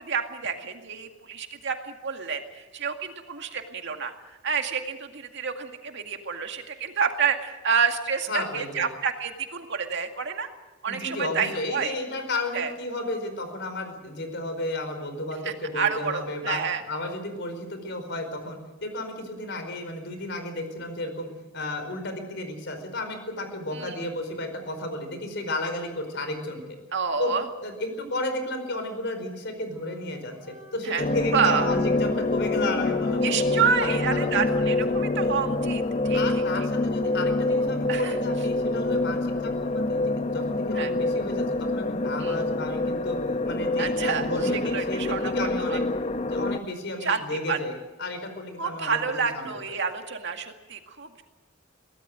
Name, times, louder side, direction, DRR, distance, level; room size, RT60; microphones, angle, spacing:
voice 1, 0.0-4.1 4.4-10.5 10.8-11.9 12.5-12.7 15.4-16.8 23.7-24.0 26.9-27.4 30.8-31.0 31.3-31.7 33.2-36.4 37.9-38.2 40.7-40.9 42.2-42.4 43.8-45.8 47.0-47.6 48.6-51.2, right 6 dB, 55° right, 4 dB, 2.1 m, -29 dB
voice 2, 8.3-8.8 10.9-16.6 16.9-21.3 21.5-26.6 27.2-27.3 27.6-30.3 30.7-33.2 33.5-34.8 36.1-43.2 43.5-45.8 46.3-47.7 48.0-49.0 49.3-49.5, left 2 dB, 55° left, 7 dB, 4.9 m, -33 dB
Wind instrument woodwind instrument, 29.7-36.0, equal, 10° right, 6.7 m, -49 dB
sound 1, 31.0-46.6, left 2 dB, 30° left, 0.8 m, -26 dB
23.0 x 18.0 x 7.9 m, 1.2 s
head